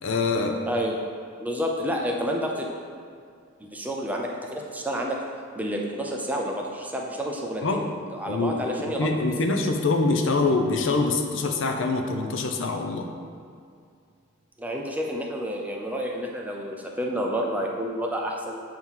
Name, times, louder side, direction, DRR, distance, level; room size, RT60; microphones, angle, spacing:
voice 1, 0.0-0.6 7.6-7.8 8.3-13.1, left 3 dB, 60° left, 4 dB, 0.6 m, -25 dB
voice 2, 0.7-1.0 1.4-2.7 3.6-5.2 5.6-7.8 8.1-9.4 14.6-18.6, equal, 10° right, -1 dB, 0.5 m, -29 dB
7.6 x 2.9 x 5.6 m, 2.3 s
head